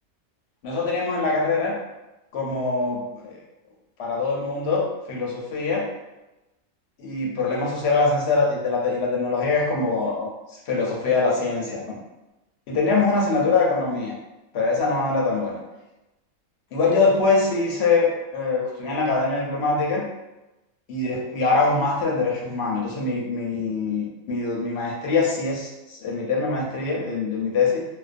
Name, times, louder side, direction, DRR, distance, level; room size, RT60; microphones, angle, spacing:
voice 1, 0.6-1.7 2.3-3.4 4.0-5.9 7.0-10.3 10.7-12.0 12.7-14.1 14.5-15.6 16.7-20.1 20.9-27.9, left 3 dB, 60° left, -2 dB, 0.7 m, -23 dB
2.4 x 2.2 x 2.4 m, 1.0 s
omnidirectional pair, 1.4 m